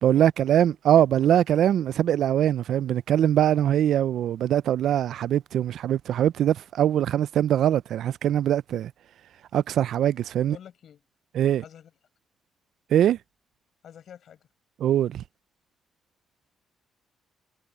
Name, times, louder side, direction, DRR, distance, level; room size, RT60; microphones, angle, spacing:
voice 1, 0.0-8.9 9.5-10.6 11.4-11.6 12.9-13.2 14.8-15.2, right 10 dB, 75° right, 0.4 m, -22 dB
voice 2, 10.4-11.0 11.6-11.9 13.8-14.5, left 9 dB, 65° left, 6.7 m, -47 dB
cardioid pair, 100°, 0 cm